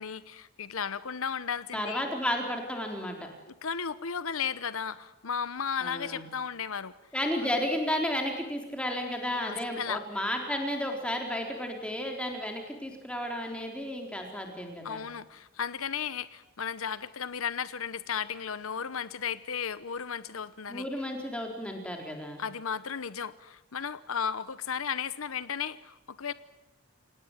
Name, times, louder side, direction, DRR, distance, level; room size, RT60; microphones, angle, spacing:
voice 1, 0.0-2.0 3.6-6.9 7.4-7.5 9.4-10.0 14.8-20.9 22.4-26.3, left 7 dB, 80° left, 15 dB, 0.9 m, -34 dB
voice 2, 1.7-3.3 5.8-6.2 7.1-15.0 20.7-22.4, left 1 dB, 5° left, 2 dB, 4.1 m, -33 dB
28.0 x 18.0 x 9.3 m, 1.0 s
head